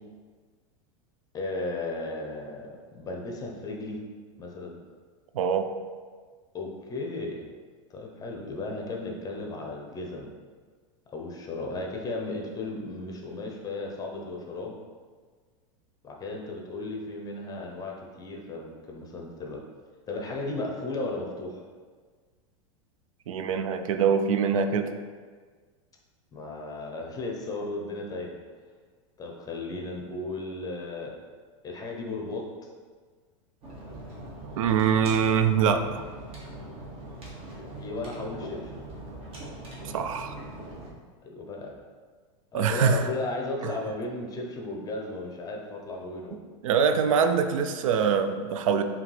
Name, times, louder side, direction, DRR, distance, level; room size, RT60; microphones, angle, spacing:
voice 1, 1.3-4.0 4.4-4.8 6.5-7.4 7.9-10.3 11.1-14.8 16.0-19.6 20.1-21.6 26.3-28.4 29.2-31.1 31.6-32.4 37.8-38.7 41.2-41.8 42.5-46.4, left 2 dB, 20° left, 0 dB, 0.8 m, -35 dB
voice 2, 5.3-5.7 23.3-24.9 34.6-36.0 39.9-40.4 42.5-43.0 46.6-48.8, right 6 dB, 85° right, 8 dB, 0.4 m, -24 dB
sound 1, 33.6-40.9, right 1 dB, 35° right, 1.3 m, -41 dB
4.9 x 2.9 x 3.3 m, 1.5 s
supercardioid pair, 120°, 17 cm